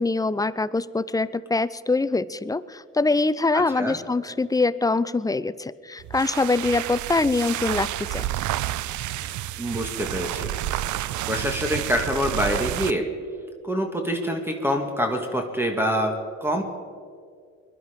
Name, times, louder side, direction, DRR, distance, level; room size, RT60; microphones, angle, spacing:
voice 1, 0.0-8.2, left 3 dB, 10° left, 15 dB, 0.4 m, -24 dB
voice 2, 3.5-4.0 9.6-10.5 11.3-13.1 13.6-16.6, equal, 5° right, 3 dB, 1.8 m, -26 dB
sound 1, 6.0-13.0, right 13 dB, 75° right, 0.6 m, -30 dB
21.5 x 11.5 x 5.1 m, 2.1 s
cardioid pair, 90°, 30 cm